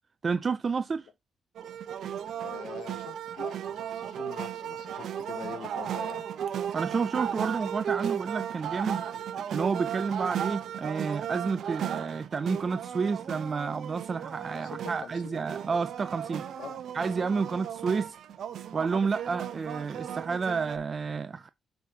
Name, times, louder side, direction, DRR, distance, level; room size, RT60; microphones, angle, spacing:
voice 1, 0.2-1.1 6.7-9.0 9.5-16.5 16.9-18.2 18.7-21.5, right 5 dB, 35° right, 0.4 m, -30 dB
sound 1, 1.6-20.8, right 9 dB, 65° right, 0.8 m, -35 dB
voice 2, 2.4-6.3 14.5-15.4 16.6-16.8, left 9 dB, 80° left, 0.9 m, -44 dB
7.7 x 5.4 x 2.8 m
cardioid pair, 90°, 0 cm